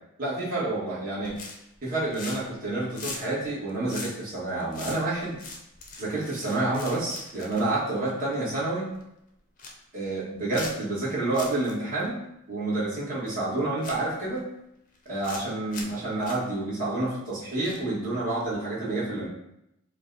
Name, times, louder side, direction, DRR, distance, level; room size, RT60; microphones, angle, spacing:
voice 1, 0.2-1.4 1.8-5.4 6.0-8.9 9.9-12.2 12.5-14.4 15.0-19.3, right 2 dB, 40° right, -8 dB, 1.6 m, -29 dB
sound 1, 1.2-1.8 2.1-2.6 2.9-8.4 8.9-9.0 9.4-9.8 10.5-11.0 11.3-11.7 12.0-12.1 13.3-13.4 13.8-14.4 15.0-15.4 15.7-16.0 16.2-16.4 17.6-18.1 18.4-18.5, left 3 dB, 35° left, 0.7 m, -41 dB
4.9 x 2.3 x 3.9 m, 0.83 s
head